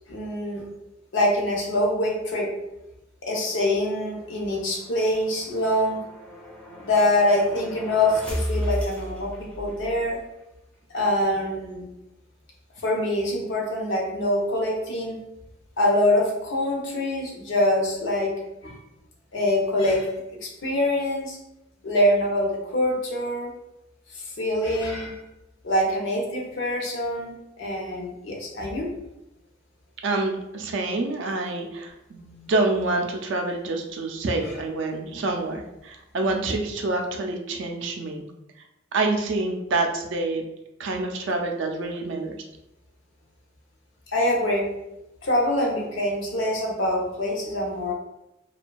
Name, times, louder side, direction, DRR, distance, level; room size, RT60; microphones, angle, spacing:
voice 1, 0.1-0.7 1.1-2.5 3.2-6.0 6.8-10.2 10.9-11.9 12.8-15.2 15.8-18.3 18.6-18.8 19.3-20.1 20.4-21.4 21.8-23.5 24.1-25.2 25.6-28.9 44.1-44.7 45.2-47.9, left 1 dB, 65° left, 0 dB, 0.6 m, -24 dB
sound 1, 3.4-10.1, equal, 5° left, 0.4 m, -35 dB
voice 2, 30.0-38.2 38.9-40.4 40.8-42.4, right 2 dB, 65° right, 3 dB, 0.4 m, -27 dB
2.5 x 2.2 x 2.2 m, 0.90 s
head